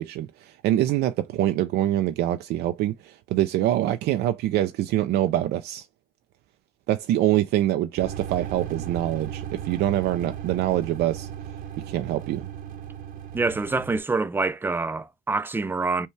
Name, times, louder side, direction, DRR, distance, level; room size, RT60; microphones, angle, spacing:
voice 1, 0.0-5.9 6.9-11.3 11.9-12.5, right 13 dB, 75° right, 0.4 m, -25 dB
sound 1, 8.0-14.0, right 9 dB, 55° right, 0.8 m, -36 dB
voice 2, 13.3-16.1, right 3 dB, 10° right, 0.4 m, -26 dB
5.5 x 2.2 x 3.1 m
cardioid pair, 110°, 17 cm